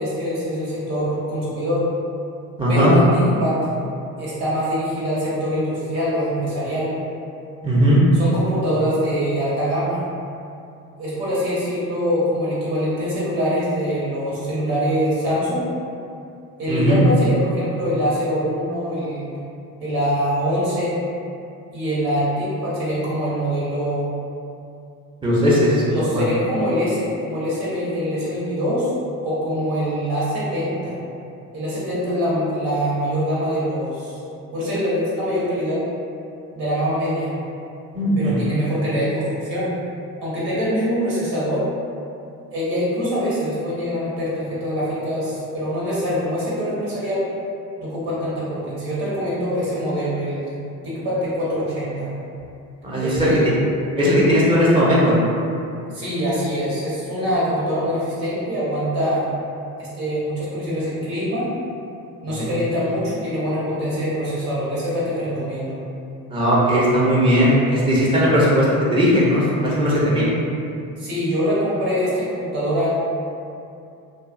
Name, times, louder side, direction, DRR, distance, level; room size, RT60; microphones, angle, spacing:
voice 1, 0.0-1.8 2.7-3.5 4.2-6.9 8.1-10.1 11.0-15.6 16.6-19.3 19.8-21.0 21.7-24.1 25.9-28.9 29.2-31.0 31.5-34.2 34.5-35.8 36.5-37.3 38.2-39.7 40.2-41.7 42.5-47.2 47.8-50.5 50.8-52.1 53.0-53.5 55.9-59.2 59.8-61.5 62.2-65.8 71.0-72.9, equal, 75° right, -9 dB, 1.2 m, -24 dB
voice 2, 2.6-3.0 7.6-8.0 16.7-17.0 25.2-25.8 26.1-26.3 37.9-38.4 52.8-53.3 54.0-55.2 62.3-62.5 66.3-68.7 68.9-70.3, equal, 10° right, -7 dB, 0.7 m, -17 dB
2.6 x 2.3 x 2.5 m, 2.5 s
hypercardioid pair, 55°, 42 cm